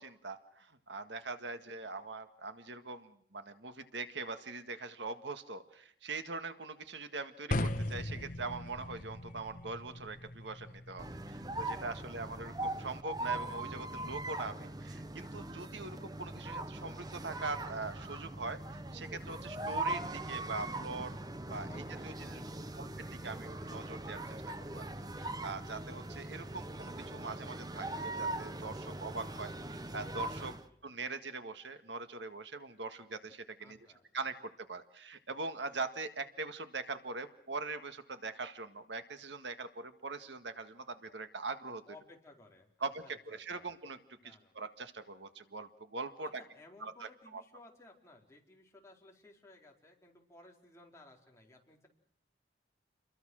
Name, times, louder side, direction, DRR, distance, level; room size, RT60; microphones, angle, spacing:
voice 1, 0.0-21.2 21.5-22.4 22.8-24.9 25.2-30.6 30.8-33.8 34.1-41.8 42.8-46.4 46.8-47.4, right 3 dB, 80° right, 9 dB, 1.8 m, -42 dB
sound 1, 7.5-13.6, left 1 dB, 45° left, 1.2 m, -40 dB
sound 2, 11.0-30.7, right 2 dB, 20° right, 0.9 m, -41 dB
voice 2, 11.9-12.6 21.6-22.9 30.4-30.8 33.6-34.0 41.9-43.7 44.2-44.5 46.2-51.9, left 2 dB, 15° left, -1 dB, 4.5 m, -59 dB
29.0 x 22.5 x 6.4 m, 0.67 s
head